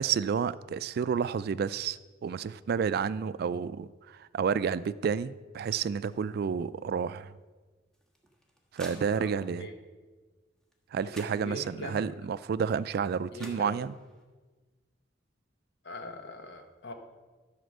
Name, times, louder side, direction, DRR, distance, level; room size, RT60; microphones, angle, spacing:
voice 1, 0.0-7.3 8.7-9.7 10.9-13.9, right 6 dB, 55° right, 16 dB, 0.3 m, -30 dB
sound 1, 7.9-9.6 10.7-10.8 11.1-11.9 13.0-13.1 13.4-14.2, equal, 5° left, 1.3 m, -50 dB
voice 2, 9.0-9.7 11.0-12.0 13.3-13.8 15.8-16.9, left 1 dB, 65° left, 5 dB, 1.1 m, -42 dB
11.0 x 5.1 x 6.5 m, 1.3 s
head